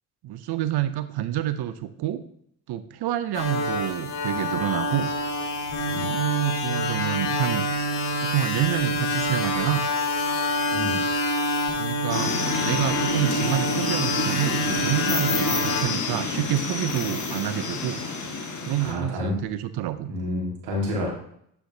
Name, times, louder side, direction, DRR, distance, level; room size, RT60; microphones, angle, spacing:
voice 1, 0.2-2.2 2.7-5.1 6.1-7.9 8.2-9.9 11.8-18.0 18.6-20.1, right 12 dB, 60° right, 12 dB, 0.6 m, -28 dB
sound 1, 3.3-15.8, left 1 dB, 65° left, 1.5 m, -26 dB
sound 2, 12.1-18.9, left 4 dB, 40° left, 1.3 m, -28 dB
voice 2, 18.8-19.3 20.1-21.1, left 1 dB, 80° right, -2 dB, 1.8 m, -29 dB
8.9 x 4.5 x 2.7 m, 0.70 s
hypercardioid pair, 50°, 46 cm